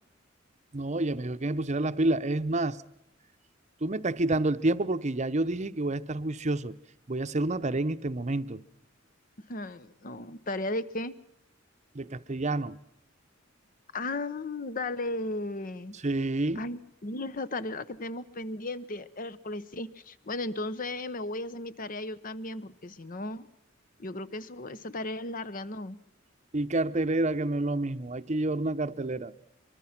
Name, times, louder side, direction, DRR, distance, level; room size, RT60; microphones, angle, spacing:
voice 1, 0.7-2.8 3.8-6.7 7.1-8.6 11.9-12.8 16.0-16.6 26.5-29.3, right 2 dB, 35° right, 0.8 m, -28 dB
voice 2, 9.5-11.1 13.9-15.9 16.5-23.5 24.0-26.0, left 2 dB, 45° left, 0.9 m, -35 dB
24.0 x 23.5 x 5.9 m
head